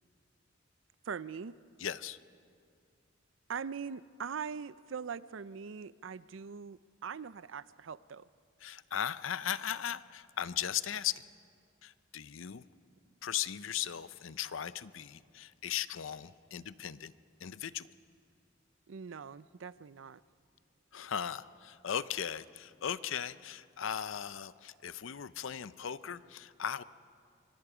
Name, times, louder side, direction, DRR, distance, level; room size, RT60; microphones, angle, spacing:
voice 1, 1.1-1.5 3.5-8.3 18.9-20.2, right 6 dB, 70° right, 17 dB, 0.5 m, -42 dB
voice 2, 1.8-2.2 8.6-11.2 11.8-12.6 13.2-17.1 17.4-17.9 20.9-26.8, left 9 dB, 75° left, 16 dB, 0.6 m, -37 dB
25.5 x 24.5 x 5.0 m, 2.3 s
head